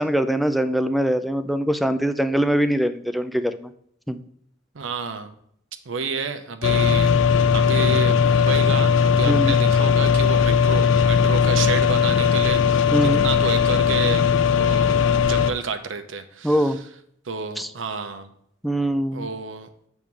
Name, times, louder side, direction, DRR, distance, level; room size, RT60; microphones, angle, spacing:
voice 1, 0.0-3.7 4.1-4.2 9.3-9.6 12.9-13.2 16.4-16.8 17.6-17.7 18.6-19.3, right 1 dB, ahead, 9 dB, 0.4 m, -22 dB
voice 2, 4.7-5.3 5.9-7.1 7.5-14.2 14.5-16.7 17.2-18.3 19.1-19.7, right 5 dB, 85° right, 8 dB, 0.7 m, -30 dB
sound 1, 6.6-15.5, left 6 dB, 75° left, 0.4 m, -18 dB
7.1 x 3.6 x 6.1 m, 0.69 s
head